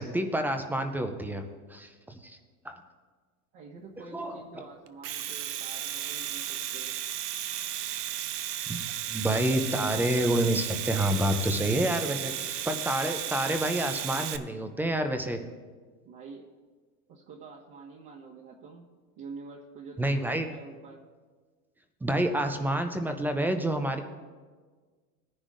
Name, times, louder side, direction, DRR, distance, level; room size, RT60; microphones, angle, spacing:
voice 1, 0.0-2.4 2.6-2.8 4.1-4.4 8.7-8.8 9.1-15.4 20.0-20.5 22.0-24.0, right 1 dB, 5° right, 7 dB, 0.3 m, -28 dB
voice 2, 3.5-6.9 16.0-16.5 17.1-21.0, right 4 dB, 50° right, -3 dB, 1.6 m, -47 dB
Domestic sounds home sounds, 4.9-14.4, right 11 dB, 85° right, 0.8 m, -34 dB
18.5 x 10.0 x 2.5 m, 1.5 s
supercardioid pair, 115°, 46 cm